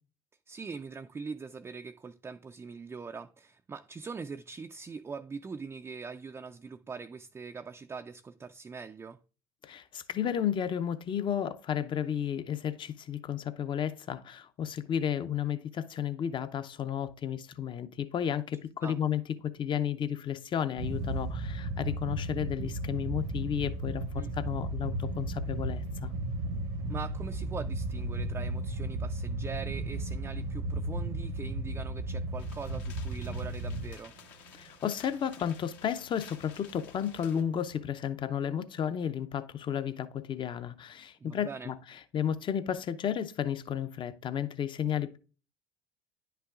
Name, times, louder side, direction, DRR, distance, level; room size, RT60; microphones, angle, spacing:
voice 1, 0.5-9.2 18.8-19.0 24.2-24.3 26.9-34.1 41.2-41.7, right 5 dB, 20° right, 0.4 m, -42 dB
voice 2, 9.6-26.1 34.5-45.2, left 9 dB, 40° left, 0.7 m, -33 dB
sound 1, 20.8-34.2 34.5-34.7 35.4-35.6 36.2-36.4 37.5-37.7, right 2 dB, 85° right, 1.2 m, -34 dB
sound 2, 32.4-37.4, left 8 dB, 70° left, 1.3 m, -54 dB
10.0 x 5.7 x 2.5 m
hypercardioid pair, 85°, 13 cm